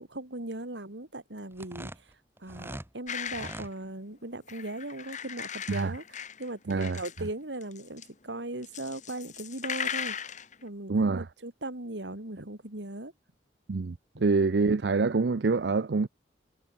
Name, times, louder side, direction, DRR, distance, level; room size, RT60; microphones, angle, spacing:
voice 1, 0.0-2.1 2.4-6.0 6.4-10.1 10.6-13.1 14.1-14.2, right 1 dB, 90° right, 3.5 m, -38 dB
sound 1, 1.5-2.9 3.3-3.7, right 1 dB, 15° right, 1.8 m, -42 dB
sound 2, 3.1-3.7 4.5-7.3 7.6-8.1 8.6-10.6, left 8 dB, 45° left, 3.6 m, -38 dB
voice 2, 6.7-7.0 10.9-11.2 13.7-16.1, right 4 dB, 70° right, 0.6 m, -26 dB
head